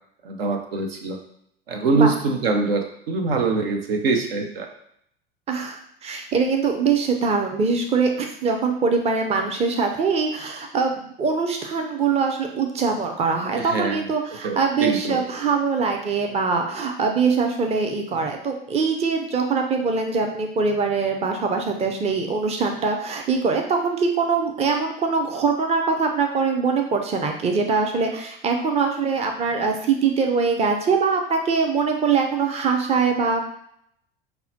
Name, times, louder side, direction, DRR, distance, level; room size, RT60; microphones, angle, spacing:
voice 1, 0.2-1.2 1.7-4.7 13.6-14.0 14.4-15.2, right 4 dB, 75° right, 3 dB, 0.7 m, -23 dB
voice 2, 5.5-33.4, right 5 dB, 20° right, 4 dB, 0.6 m, -23 dB
5.4 x 2.2 x 2.8 m, 0.70 s
hypercardioid pair, 80°, 30 cm